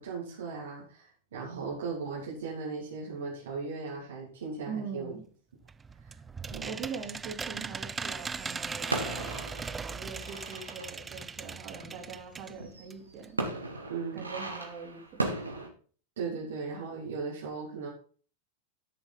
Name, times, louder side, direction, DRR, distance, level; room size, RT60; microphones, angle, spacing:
voice 1, 0.0-5.1 6.0-6.1 6.5-6.7 13.9-14.2 16.2-17.9, right 4 dB, 65° right, -4 dB, 3.0 m, -37 dB
voice 2, 4.7-5.2 6.6-9.4 9.8-13.4 14.1-15.3, right 5 dB, 40° right, 2 dB, 3.4 m, -42 dB
sound 1, 5.7-12.6 12.9-13.0 13.2-13.3, right 5 dB, 15° right, 0.4 m, -39 dB
sound 2, 8.8-15.7, right 2 dB, 80° right, 2.0 m, -37 dB
12.0 x 6.9 x 4.1 m, 0.41 s
figure-of-eight pair, 90°, 0 cm